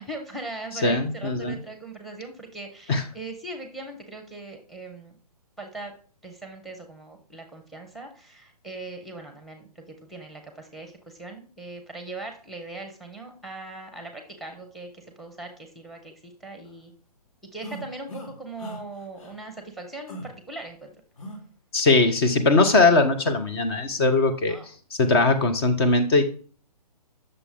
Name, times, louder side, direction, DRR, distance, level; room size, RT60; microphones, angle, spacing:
voice 1, 0.0-5.1 5.6-5.9 6.2-16.9 17.5-20.9 24.5-24.7, right 2 dB, ahead, 5 dB, 1.2 m, -40 dB
voice 2, 0.8-1.6 2.9-3.0 21.7-24.6 25.0-26.2, left 3 dB, 40° left, 6 dB, 1.2 m, -20 dB
sound 1, 17.6-18.3 18.6-18.8 19.2-19.3 20.1-20.3 21.2-21.4, right 1 dB, 55° left, 2.7 m, -38 dB
9.8 x 6.8 x 3.8 m, 0.42 s
figure-of-eight pair, 130°, 20 cm